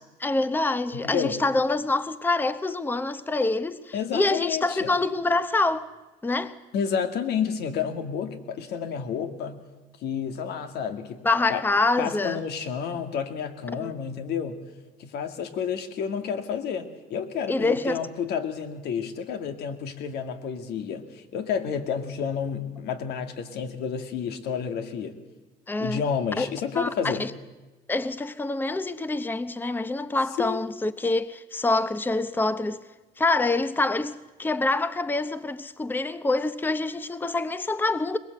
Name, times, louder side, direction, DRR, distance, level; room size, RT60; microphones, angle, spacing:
voice 1, 0.2-5.9 6.2-6.6 11.2-12.4 13.8-13.9 17.5-18.0 25.7-26.0 26.4-26.5 26.7-27.3 27.9-32.8 33.2-38.2, left 2 dB, 10° left, 0.8 m, -26 dB
voice 2, 0.9-1.4 3.9-4.9 6.7-9.6 10.0-11.2 11.5-11.6 12.0-14.6 15.0-25.2 25.8-27.3 30.4-30.7, left 7 dB, 75° left, 2.1 m, -30 dB
22.0 x 21.5 x 7.9 m
cardioid pair, 110°, 17 cm